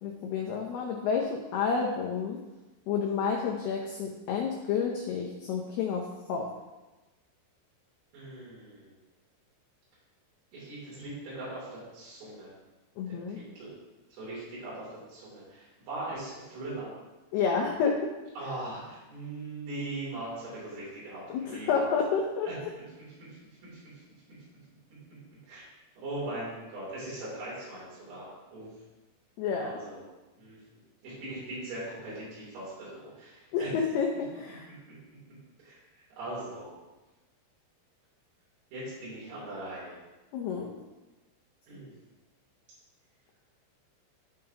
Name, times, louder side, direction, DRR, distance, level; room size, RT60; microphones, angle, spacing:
voice 1, 0.0-2.4 2.9-6.5 13.0-13.4 17.3-18.0 21.3-22.5 29.4-29.7 33.5-34.7 40.3-40.7, left 6 dB, 85° left, 0 dB, 2.3 m, -30 dB
voice 2, 8.1-8.9 10.5-12.5 13.1-13.7 14.1-16.9 18.4-22.0 22.5-22.6 25.5-25.6 26.0-28.7 29.6-30.0 30.4-30.6 31.0-33.7 35.6-35.7 36.2-36.7 38.7-40.0 41.7-41.9, right 2 dB, 80° right, -9 dB, 6.0 m, -40 dB
14.5 x 5.6 x 2.9 m, 1.1 s
omnidirectional pair, 5.8 m